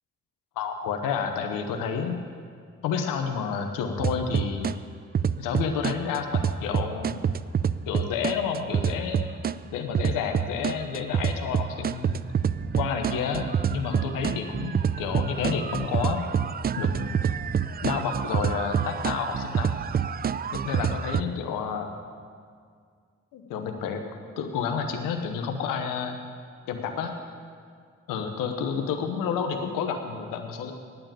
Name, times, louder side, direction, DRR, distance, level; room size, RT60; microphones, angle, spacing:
voice 1, 0.6-2.2 2.8-4.8 5.4-7.2 7.9-9.3 9.7-12.2 12.7-16.3 16.8-17.3 17.8-19.8 20.5-21.9 23.3-24.0 24.4-26.2 26.7-27.1 28.1-30.7, left 6 dB, 85° left, 5 dB, 0.9 m, -30 dB
sound 1, 4.0-4.8 5.1-9.6 10.0-21.2, right 7 dB, 30° right, 0.4 m, -27 dB
9.2 x 8.8 x 8.9 m, 2.1 s
supercardioid pair, 45°, 32 cm